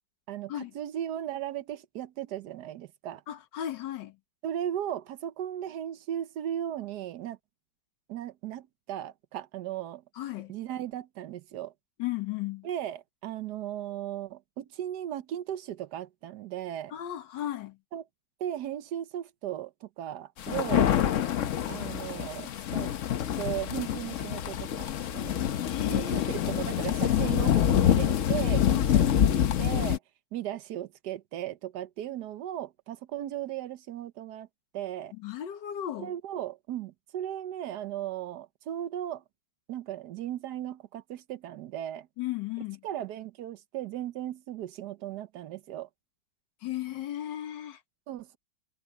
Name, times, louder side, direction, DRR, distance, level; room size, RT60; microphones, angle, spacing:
voice 1, 0.3-3.2 4.4-7.4 8.1-10.0 10.5-11.7 12.6-16.9 17.9-18.0 18.4-20.9 21.7-22.9 23.4-25.4 25.9-30.0 30.3-34.5 34.7-35.1 36.0-39.2 39.7-42.1 42.8-45.9 48.1-48.4, right 11 dB, 70° right, 1.3 m, -36 dB
voice 2, 3.3-4.2 10.2-10.6 12.0-12.7 16.9-17.8 25.6-26.4 28.7-29.0 35.1-36.1 42.2-42.8 46.6-47.8, left 12 dB, 85° left, 1.7 m, -35 dB
sound 1, 20.4-30.0, left 10 dB, 60° left, 0.9 m, -26 dB
omnidirectional pair, 1.9 m